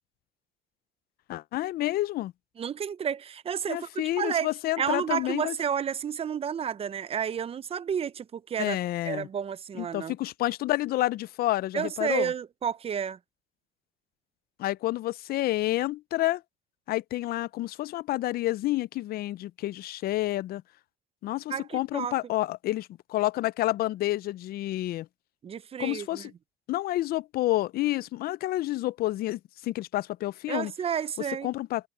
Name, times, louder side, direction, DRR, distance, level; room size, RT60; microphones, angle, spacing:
voice 1, 1.3-2.3 3.7-5.5 8.6-9.3 9.8-12.3 14.6-16.4 16.9-20.6 21.2-25.1 25.8-26.3 26.7-30.7 31.4-31.9, left 16 dB, 65° left, 0.5 m, -29 dB
voice 2, 2.6-4.5 4.8-8.8 9.1-10.1 11.7-13.2 21.5-22.1 25.4-26.3 30.5-31.5, right 8 dB, 35° right, 0.6 m, -31 dB
cardioid pair, 110°, 17 cm